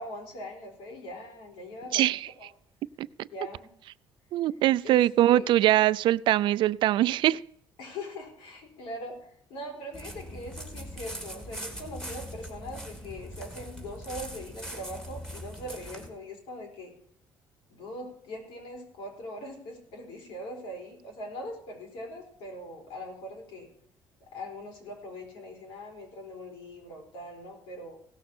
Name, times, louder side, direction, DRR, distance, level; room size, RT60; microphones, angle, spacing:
voice 1, 0.0-2.0 2.4-2.5 3.3-3.7 4.8-5.5 7.8-16.9 17.7-23.7 24.3-28.0, left 1 dB, 90° left, 4.4 m, -41 dB
voice 2, 4.3-7.4, right 14 dB, 70° right, 0.4 m, -23 dB
sound 1, 9.9-16.1, equal, 5° left, 3.0 m, -41 dB
17.0 x 6.5 x 6.0 m
cardioid pair, 125°, 8 cm